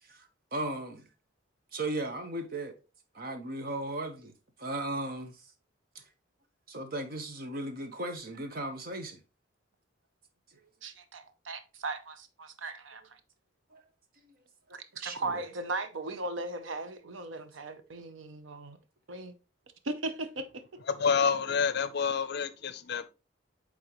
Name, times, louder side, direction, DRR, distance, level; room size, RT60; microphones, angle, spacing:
voice 1, 0.1-1.0 1.7-2.7 3.1-4.3 4.6-5.4 5.9-6.0 6.7-9.2 13.7-13.8 15.0-15.4, right 2 dB, 50° right, 1.0 m, -36 dB
voice 2, 10.8-13.2 14.7-18.8 19.1-19.3 19.8-20.6, right 2 dB, 80° right, 0.7 m, -38 dB
voice 3, 20.9-23.1, left 6 dB, 55° left, 0.5 m, -28 dB
8.7 x 3.6 x 3.0 m
head